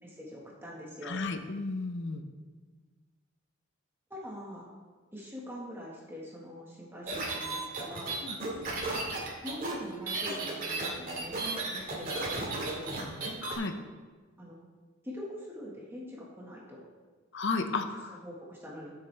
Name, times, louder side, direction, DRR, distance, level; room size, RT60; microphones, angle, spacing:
voice 1, 0.0-1.2 4.1-4.7 5.1-8.2 8.9-11.4 11.7-13.1 14.4-14.6 15.0-16.8 18.1-18.9, left 1 dB, 10° right, -4 dB, 1.6 m, -44 dB
voice 2, 1.0-2.2 8.2-8.4 13.4-13.7 17.3-18.2, left 3 dB, 60° left, 7 dB, 0.7 m, -33 dB
sound 1, 7.1-13.6, right 3 dB, 45° right, 2.2 m, -34 dB
12.5 x 7.3 x 3.4 m, 1.4 s
head